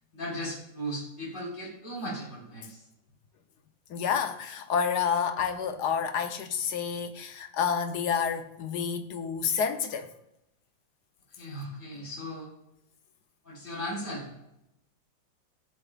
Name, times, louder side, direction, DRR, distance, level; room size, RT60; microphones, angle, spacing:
voice 1, 0.1-2.8 11.4-12.5 13.4-14.3, equal, 30° left, 4.1 m, -37 dB
voice 2, 3.9-10.1, left 7 dB, 65° left, 1.4 m, -29 dB
17.0 x 6.8 x 2.5 m
omnidirectional pair, 2.0 m